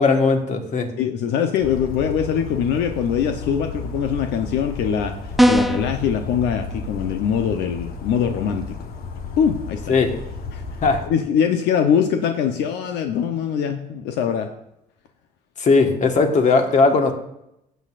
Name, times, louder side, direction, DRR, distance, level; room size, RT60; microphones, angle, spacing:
voice 1, 0.0-0.9 9.9-10.2 10.8-11.0 15.6-17.1, left 4 dB, 45° left, 5 dB, 1.6 m, -18 dB
voice 2, 1.0-5.1 5.5-8.8 9.4-10.0 10.5-10.6 11.1-14.5, left 8 dB, 85° left, 6 dB, 0.9 m, -22 dB
Bird vocalization bird call bird song, 1.6-11.1, left 3 dB, 65° left, 1.3 m, -33 dB
sound 1, 5.4-5.9, equal, ahead, 0.6 m, -16 dB
15.5 x 7.9 x 2.5 m, 0.83 s
cardioid pair, 110°, 17 cm